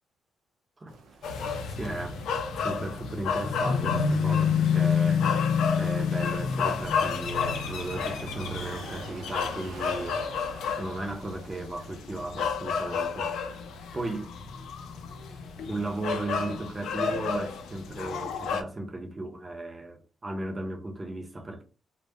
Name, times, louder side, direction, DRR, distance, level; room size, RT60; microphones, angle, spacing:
sound 1, 0.9-17.2, right 3 dB, 70° right, 0.6 m, -50 dB
sound 2, 1.2-18.6, left 6 dB, 75° left, 0.4 m, -29 dB
voice 1, 1.8-2.2 2.6-5.3 5.8-10.2 10.7-13.6 13.9-14.3 15.7-21.6, right 2 dB, 20° right, 0.5 m, -36 dB
2.1 x 2.0 x 3.3 m
cardioid pair, 155°, 0 cm